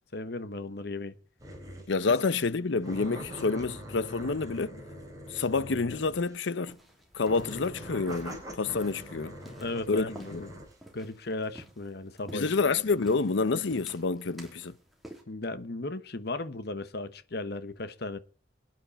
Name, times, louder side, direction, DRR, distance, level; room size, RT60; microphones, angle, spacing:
voice 1, 0.1-1.1 9.5-10.5 10.9-12.6 15.3-18.2, left 2 dB, 55° left, 1.1 m, -36 dB
sound 1, 1.4-1.9 2.3-2.4 2.8-6.5 7.1-10.8, equal, 20° right, 4.5 m, -43 dB
voice 2, 1.9-4.8 5.3-6.8 7.1-9.4 9.9-10.4 12.3-14.7, left 4 dB, 75° left, 0.7 m, -28 dB
sound 2, 6.7-15.2, equal, ahead, 3.1 m, -52 dB
25.5 x 9.6 x 4.2 m
head